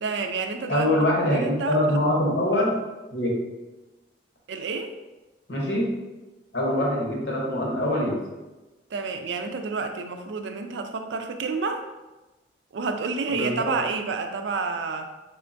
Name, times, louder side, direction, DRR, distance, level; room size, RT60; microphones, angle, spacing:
voice 1, 0.0-0.9 1.2-2.0 4.5-4.9 8.9-11.8 12.7-15.1, right 4 dB, 80° right, 5 dB, 0.4 m, -29 dB
voice 2, 0.7-2.8 3.1-3.4 5.5-5.9 6.5-8.2 13.3-13.7, left 1 dB, 70° left, -2 dB, 1.0 m, -24 dB
3.6 x 3.3 x 2.6 m, 1.1 s
head